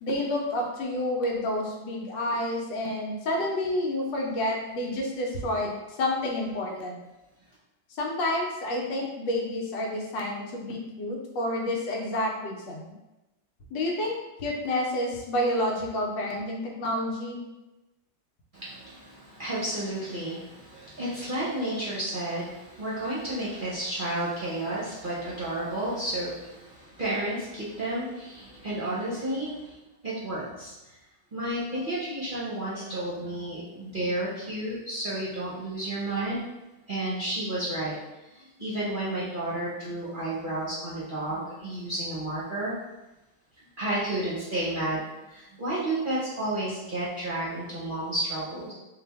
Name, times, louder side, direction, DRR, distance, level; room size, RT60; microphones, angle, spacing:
voice 1, 0.0-7.0 7.9-12.8 13.7-17.4 31.8-31.9, left 1 dB, 90° left, 0 dB, 1.5 m, -29 dB
voice 2, 18.5-29.8 30.0-30.7 31.3-36.4 36.9-38.0 38.3-42.7 43.8-45.0 45.3-48.7, right 1 dB, 40° right, -7 dB, 0.7 m, -31 dB
4.1 x 2.9 x 3.4 m, 1.0 s
omnidirectional pair, 1.9 m